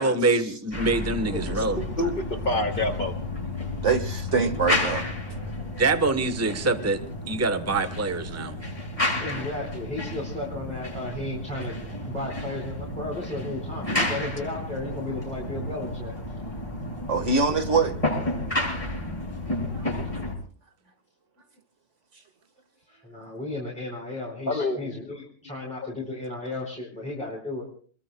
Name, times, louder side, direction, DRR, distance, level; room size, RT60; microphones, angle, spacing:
voice 1, 0.0-1.8 5.8-8.6, right 3 dB, 15° right, 10 dB, 1.0 m, -25 dB
sound 1, 0.7-20.4, left 1 dB, 25° left, 7.7 m, -31 dB
voice 2, 1.3-1.6 2.0-3.1 24.5-24.8, left 2 dB, 40° left, 5 dB, 2.4 m, -27 dB
voice 3, 3.8-5.0 17.1-18.0 19.7-19.8, right 4 dB, 65° right, 7 dB, 1.8 m, -24 dB
voice 4, 9.2-16.1 22.9-27.7, left 2 dB, 5° left, -2 dB, 4.4 m, -34 dB
28.0 x 21.5 x 2.2 m, 0.43 s
omnidirectional pair, 1.4 m